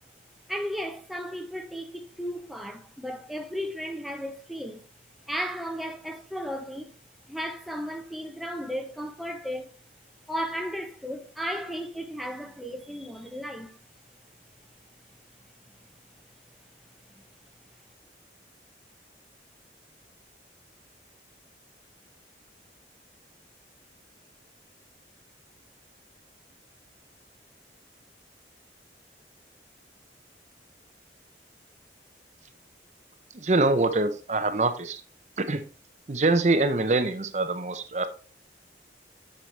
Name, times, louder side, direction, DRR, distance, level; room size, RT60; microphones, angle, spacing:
voice 1, 0.5-4.9 5.3-6.9 7.3-9.7 10.3-13.8 17.2-17.3, equal, ahead, 0.7 m, -34 dB
voice 2, 33.3-35.0 35.4-35.6 36.1-38.1, right 2 dB, 40° right, 0.7 m, -24 dB
7.7 x 6.9 x 3.3 m
head